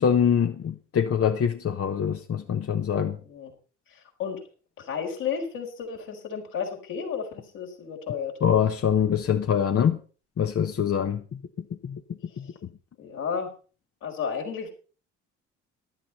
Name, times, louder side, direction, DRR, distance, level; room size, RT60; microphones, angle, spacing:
voice 1, 0.0-3.2 8.4-10.0 10.4-11.2 11.8-12.0 12.4-12.5, left 8 dB, 40° left, 1.1 m, -24 dB
voice 2, 3.2-3.5 3.9-4.4 4.8-8.4 13.0-13.5 14.0-14.7, left 6 dB, 70° left, 4.5 m, -32 dB
14.5 x 11.5 x 4.2 m
hypercardioid pair, 55°, 34 cm